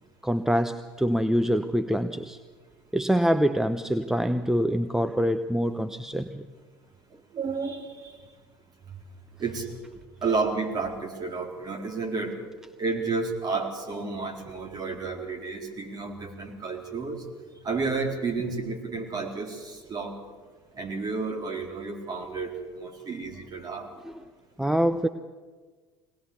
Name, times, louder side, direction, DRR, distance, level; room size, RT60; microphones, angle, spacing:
voice 1, 0.2-2.4 2.9-6.4 24.0-24.1 24.6-25.1, equal, 5° right, 10 dB, 0.8 m, -25 dB
voice 2, 7.3-8.1 9.4-9.7 10.2-12.3 12.8-17.2 17.6-20.2 20.8-23.9, right 4 dB, 35° right, 2 dB, 4.3 m, -31 dB
23.0 x 18.5 x 7.0 m, 1.4 s
figure-of-eight pair, 70°, 12 cm